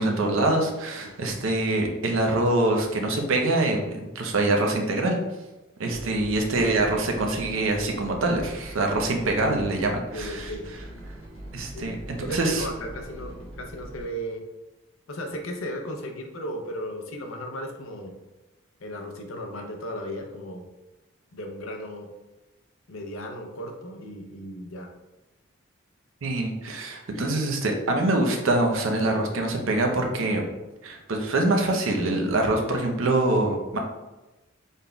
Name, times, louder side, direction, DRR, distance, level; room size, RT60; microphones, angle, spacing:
voice 1, 0.0-5.2 5.8-10.5 11.5-12.7 26.2-30.4 30.8-33.8, right 2 dB, 75° right, 2 dB, 0.6 m, -24 dB
voice 2, 5.9-6.7 9.9-10.7 11.7-11.9 12.2-14.4 15.1-18.1 18.8-20.6 21.3-22.1 22.9-24.9, equal, 80° left, 3 dB, 0.6 m, -36 dB
sound 1, 5.9-14.0, right 1 dB, 25° left, 1.1 m, -42 dB
3.9 x 3.6 x 2.2 m, 1.1 s
head